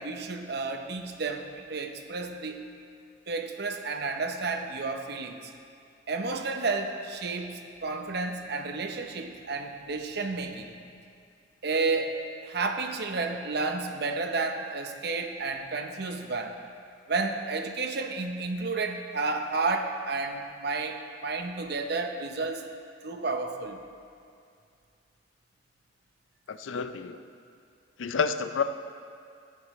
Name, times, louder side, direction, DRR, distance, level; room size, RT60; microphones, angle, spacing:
voice 1, 0.0-2.7 3.3-5.5 6.1-10.7 11.6-16.6 17.1-22.6 23.0-23.8, right 3 dB, 55° right, 5 dB, 0.7 m, -31 dB
voice 2, 26.5-27.2 28.0-28.6, left 5 dB, 90° left, 10 dB, 0.5 m, -29 dB
13.5 x 10.5 x 3.1 m, 2.4 s
head